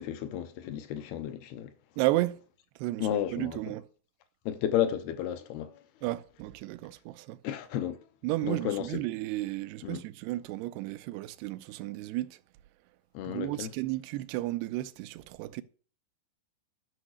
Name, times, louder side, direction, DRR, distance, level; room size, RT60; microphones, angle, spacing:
voice 1, 0.0-1.7 3.0-3.6 4.5-5.8 7.4-8.0 8.4-8.9 9.8-10.0 13.1-13.7, left 10 dB, 80° left, 2.7 m, -32 dB
voice 2, 2.0-2.4 2.8-3.9 6.0-7.4 8.2-12.4 13.2-15.6, right 17 dB, 85° right, 2.7 m, -33 dB
11.5 x 5.8 x 6.4 m
omnidirectional pair, 4.7 m